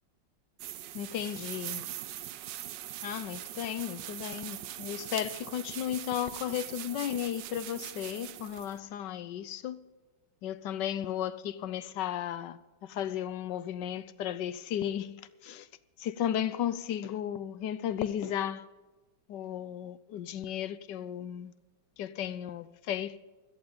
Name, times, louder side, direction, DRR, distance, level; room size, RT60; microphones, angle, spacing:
sound 1, 0.6-8.8, right 12 dB, 70° right, 1.3 m, -42 dB
voice 1, 0.9-1.9 3.0-9.8 10.4-15.7 16.0-18.7 19.3-21.5 22.0-23.2, left 10 dB, 70° left, 1.3 m, -34 dB
16.5 x 14.0 x 5.1 m
omnidirectional pair, 2.2 m